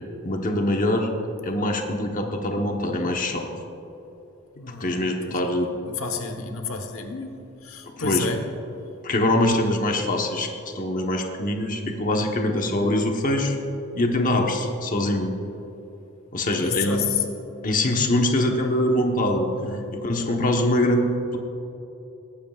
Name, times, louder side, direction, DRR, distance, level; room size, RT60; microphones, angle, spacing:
voice 1, 0.2-1.1 1.4-3.5 4.8-5.7 8.0-8.3 9.0-10.5 10.7-13.6 13.9-15.3 16.3-17.1 17.6-19.5 19.9-21.1, left 1 dB, 40° left, 2 dB, 1.1 m, -23 dB
voice 2, 4.6-7.3 7.6-8.5 12.6-12.8 16.6-17.2 19.6-20.0, left 6 dB, 80° left, 5 dB, 1.1 m, -31 dB
19.0 x 14.5 x 2.4 m, 3.0 s
head